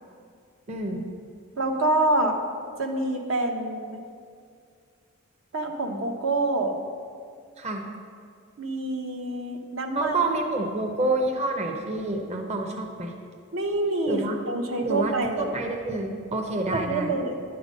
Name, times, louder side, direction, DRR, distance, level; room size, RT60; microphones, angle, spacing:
voice 1, 0.7-1.0 7.6-7.9 10.0-13.1 14.1-14.4 14.8-17.2, right 2 dB, 30° right, 2 dB, 0.7 m, -28 dB
voice 2, 1.6-2.4 2.8-4.0 5.5-6.8 8.6-10.2 13.5-15.6 16.7-17.3, right 2 dB, 70° right, 3 dB, 1.0 m, -26 dB
9.9 x 6.9 x 5.3 m, 2.3 s
head